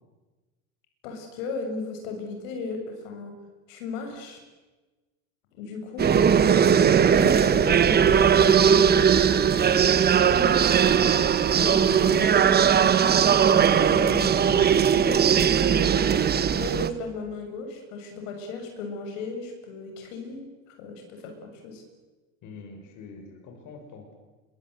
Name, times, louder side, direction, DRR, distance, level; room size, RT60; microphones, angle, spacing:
voice 1, 1.0-3.3 3.7-4.4 5.6-6.5 7.0-11.0 11.5-12.3 13.2-16.2 16.5-20.4 20.7-21.8, left 3 dB, 70° left, 4 dB, 7.2 m, -36 dB
sound 1, 6.0-16.9, right 8 dB, 25° right, 1.3 m, -19 dB
voice 2, 22.4-24.2, left 4 dB, 50° left, 3 dB, 6.6 m, -44 dB
26.5 x 23.5 x 8.2 m, 1.2 s
supercardioid pair, 115°, 39 cm